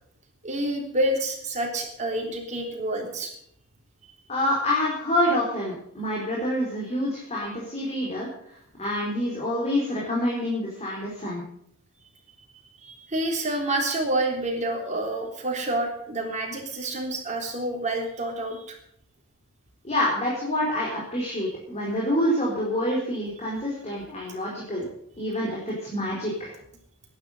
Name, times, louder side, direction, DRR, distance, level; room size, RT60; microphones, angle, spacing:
voice 1, 0.4-3.3 12.8-18.8, right 1 dB, 35° right, 1 dB, 3.5 m, -28 dB
voice 2, 4.3-8.3 8.8-11.4 19.8-24.8 25.2-26.5, left 1 dB, 35° left, -4 dB, 4.1 m, -27 dB
11.5 x 10.5 x 7.8 m, 0.70 s
head